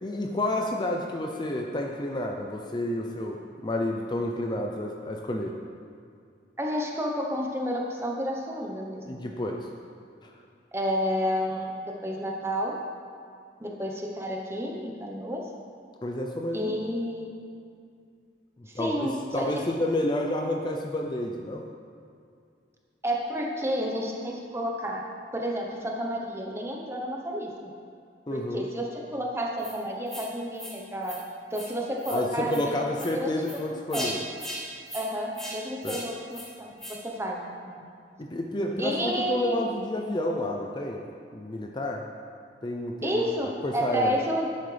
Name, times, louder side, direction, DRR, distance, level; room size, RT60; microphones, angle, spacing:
voice 1, 0.0-5.5 9.1-9.7 10.2-10.3 16.0-16.7 18.7-21.6 28.3-28.7 32.1-34.2 35.8-36.0 38.2-41.0 41.3-42.0 42.6-44.2, left 1 dB, 25° left, 1 dB, 0.5 m, -30 dB
voice 2, 6.6-9.2 10.7-12.7 13.6-15.4 16.5-17.3 18.6-19.6 23.0-25.0 25.3-27.7 28.3-31.2 31.5-34.1 34.9-37.8 38.8-39.6 43.0-44.5, equal, 15° right, 0 dB, 0.9 m, -31 dB
sound 1, 29.6-29.7 30.1-30.3 30.5-30.7 31.0-31.2 31.5-31.7 32.0-32.2 32.5-32.6 32.9-33.1 33.4-33.6 33.9-34.1 34.4-34.6 34.9-35.0 35.3-35.5 35.8-36.0 36.3-36.5 36.8-36.9, equal, 5° left, 1.8 m, -38 dB
11.0 x 8.3 x 3.4 m, 2.3 s
head